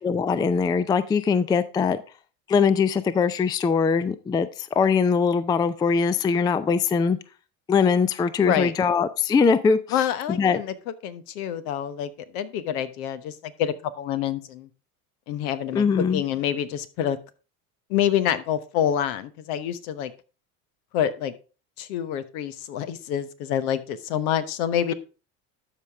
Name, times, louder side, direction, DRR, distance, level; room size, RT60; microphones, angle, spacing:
voice 1, 0.0-2.0 2.5-7.2 7.7-9.8 10.3-10.6 15.7-16.2, left 5 dB, 10° left, 0.3 m, -21 dB
voice 2, 8.4-8.7 9.9-10.7 11.0-14.7 15.3-17.2 17.9-20.1 20.9-21.3 21.8-24.9, left 10 dB, 65° left, 1.1 m, -27 dB
12.5 x 5.1 x 3.5 m
hypercardioid pair, 75°, 46 cm